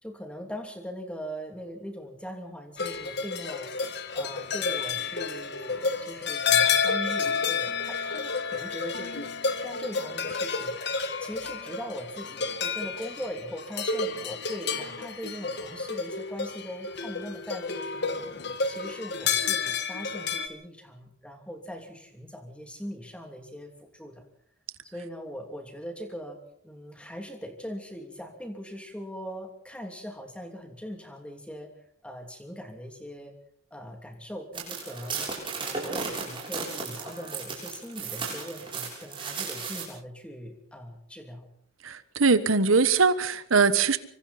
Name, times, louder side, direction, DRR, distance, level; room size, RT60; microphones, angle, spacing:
voice 1, 0.0-3.7 4.1-9.3 9.6-24.2 24.8-31.7 32.0-33.3 33.7-35.3 35.6-41.5, equal, 5° left, 2.8 m, -40 dB
sound 1, 2.8-20.5, left 5 dB, 55° left, 1.7 m, -30 dB
sound 2, 34.5-39.8, right 4 dB, 25° right, 6.9 m, -35 dB
voice 2, 41.8-44.0, right 4 dB, 85° right, 1.3 m, -22 dB
25.5 x 25.0 x 4.3 m
head